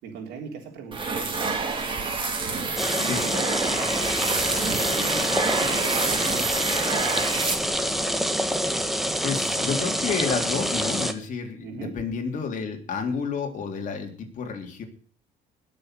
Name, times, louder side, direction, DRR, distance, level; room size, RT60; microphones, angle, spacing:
voice 1, 0.0-1.6 2.4-3.5 3.9-7.2 11.6-11.9, right 5 dB, 85° right, 0 dB, 3.5 m, -39 dB
sound 1, 0.9-8.0, right 4 dB, 30° right, 3.0 m, -28 dB
sound 2, 2.8-11.1, equal, ahead, 1.6 m, -26 dB
voice 2, 9.2-14.8, left 5 dB, 50° left, 3 dB, 3.6 m, -30 dB
20.5 x 7.0 x 6.7 m, 0.44 s
cardioid pair, 110°, 17 cm